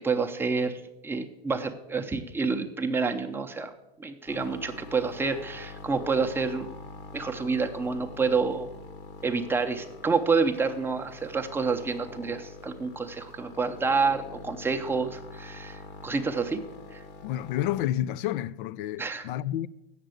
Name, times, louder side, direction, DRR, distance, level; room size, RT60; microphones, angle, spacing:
voice 1, 0.0-3.7 4.0-6.7 7.1-8.7 9.2-16.6 16.9-17.0 19.0-19.3, right 4 dB, 5° right, 0.6 m, -28 dB
sound 1, 4.3-17.8, left 4 dB, 35° left, 0.9 m, -45 dB
voice 2, 17.2-19.7, left 13 dB, 60° left, 0.4 m, -30 dB
8.0 x 6.7 x 7.6 m
hypercardioid pair, 125°, 30 cm